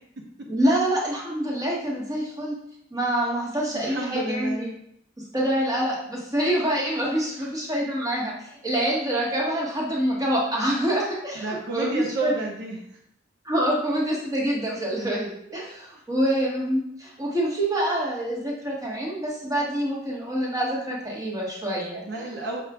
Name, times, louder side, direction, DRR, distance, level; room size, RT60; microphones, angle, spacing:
voice 1, 0.5-2.6 2.9-4.7 5.3-12.3 13.4-22.0, right 1 dB, 20° right, -3 dB, 1.1 m, -26 dB
voice 2, 3.6-4.7 7.3-7.5 11.4-12.8 22.0-22.6, right 2 dB, 60° right, 0 dB, 0.6 m, -31 dB
5.9 x 2.4 x 3.5 m, 0.73 s
head